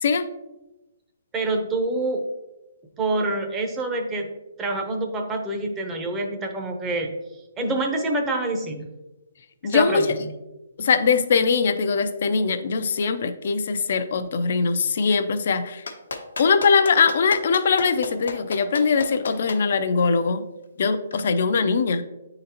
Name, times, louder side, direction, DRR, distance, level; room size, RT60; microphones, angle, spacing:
voice 1, 1.3-2.2 3.0-4.3 4.6-7.1 7.6-8.9 9.6-10.0, right 2 dB, 15° right, 3 dB, 0.7 m, -26 dB
voice 2, 9.6-10.2 10.8-15.8 16.4-20.4 20.8-22.0, left 5 dB, 55° left, 9 dB, 0.5 m, -21 dB
Clapping, 15.9-19.6 21.1-21.2, left 4 dB, 90° left, 0.9 m, -32 dB
9.1 x 3.8 x 2.8 m, 1.0 s
hypercardioid pair, 160°, 0 cm